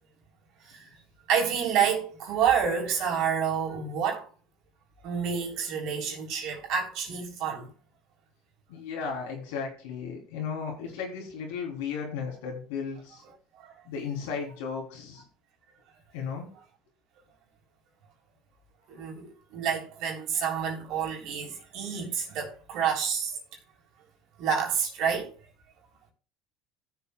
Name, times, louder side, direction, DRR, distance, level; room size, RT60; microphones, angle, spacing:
voice 1, 1.3-4.3 5.0-7.7 18.9-23.4 24.4-25.3, right 7 dB, 65° right, 3.4 m, -28 dB
voice 2, 8.7-13.2 13.8-15.2 16.1-16.5, left 6 dB, 85° left, 3.4 m, -35 dB
17.0 x 7.0 x 2.3 m
supercardioid pair, 100°, 0 cm